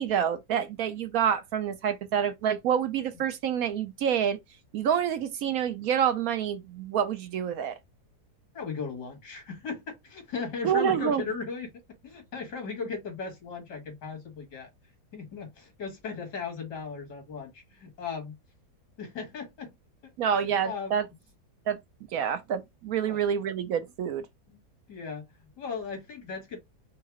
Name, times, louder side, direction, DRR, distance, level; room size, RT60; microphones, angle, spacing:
voice 1, 0.0-4.4 4.7-7.7 10.6-11.2 20.2-21.0 21.7-21.8 22.1-24.2, right 8 dB, 70° right, 1.0 m, -27 dB
voice 2, 8.5-11.7 12.0-14.7 15.1-18.3 19.0-19.7 20.0-20.1 20.4-21.0 23.0-23.2 24.9-25.2 25.6-26.6, left 5 dB, 80° left, 2.4 m, -37 dB
4.7 x 2.0 x 4.7 m
omnidirectional pair, 1.8 m